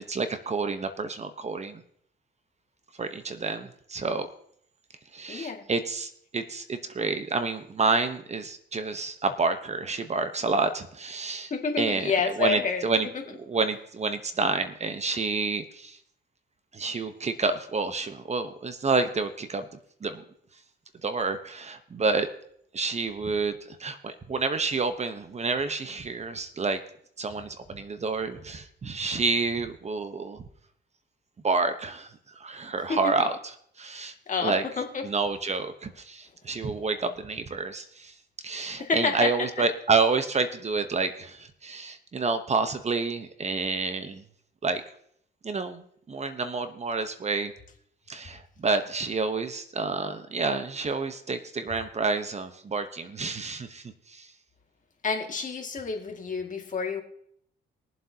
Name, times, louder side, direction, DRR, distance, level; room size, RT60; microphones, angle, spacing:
voice 1, 0.0-1.8 3.0-4.3 5.1-11.5 11.8-12.1 12.4-16.0 16.7-19.7 20.0-20.2 21.0-22.3 22.7-26.8 27.2-30.4 31.4-32.1 32.3-33.4 33.8-34.1 34.4-34.6 35.0-38.1 38.4-44.2 44.6-44.8 45.4-47.5 48.1-54.3, right 4 dB, 35° right, 9 dB, 1.0 m, -29 dB
voice 2, 5.3-5.6 11.5-12.8 13.1-13.2 32.9-33.3 34.3-35.1 38.6-39.6 55.0-57.0, left 5 dB, 40° left, 2 dB, 2.2 m, -29 dB
22.5 x 7.6 x 2.9 m, 0.67 s
cardioid pair, 90°, 20 cm